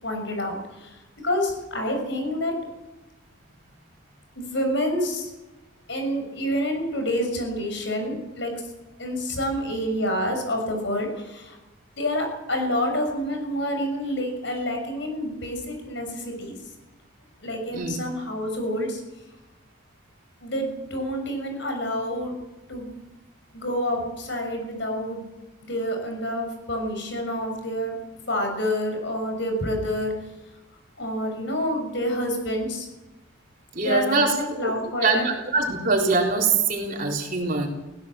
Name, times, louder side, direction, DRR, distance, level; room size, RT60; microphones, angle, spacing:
voice 1, 0.0-2.6 4.3-5.3 5.9-8.5 9.0-11.6 12.0-16.6 17.4-19.0 20.4-22.3 22.7-22.9 23.5-25.3 25.6-27.9 28.3-30.1 31.0-32.9 33.8-35.2, equal, 60° left, 4 dB, 6.4 m, -28 dB
voice 2, 33.7-34.7 35.0-37.7, right 3 dB, 45° right, 1 dB, 3.9 m, -23 dB
20.5 x 17.0 x 7.7 m, 1.0 s
head